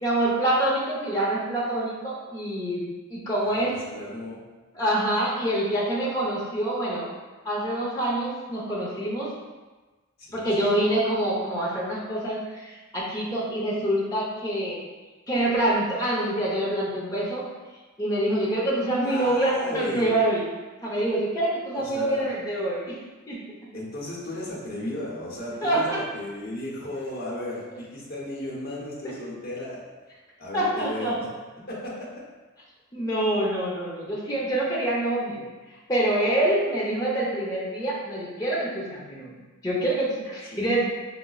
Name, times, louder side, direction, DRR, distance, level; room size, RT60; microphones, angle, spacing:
voice 1, 0.0-3.8 4.7-7.1 7.4-9.3 10.3-14.8 15.3-17.5 18.0-20.5 20.8-23.0 23.3-23.4 25.6-26.0 29.0-29.1 30.5-31.2 32.9-35.5 35.9-39.4 39.6-40.8, right 1 dB, 15° left, -6 dB, 0.7 m, -26 dB
voice 2, 3.4-4.4 10.2-10.5 19.0-20.1 21.7-22.3 23.7-29.8 30.4-31.3 31.7-32.1 40.5-40.7, left 1 dB, 50° left, -6 dB, 0.8 m, -35 dB
4.9 x 2.1 x 2.3 m, 1.3 s
head